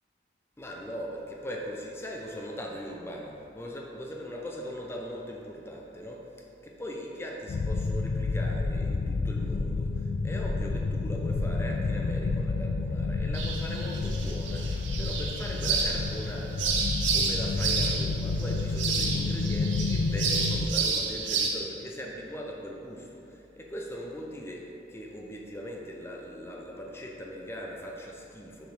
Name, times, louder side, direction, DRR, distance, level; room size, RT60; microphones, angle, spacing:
voice 1, 0.6-28.7, equal, 15° left, -1 dB, 0.6 m, -40 dB
sound 1, 7.5-20.7, left 3 dB, 60° left, 0.3 m, -30 dB
sound 2, 13.3-21.5, right 5 dB, 85° right, 0.8 m, -31 dB
6.3 x 5.0 x 3.3 m, 2.7 s
head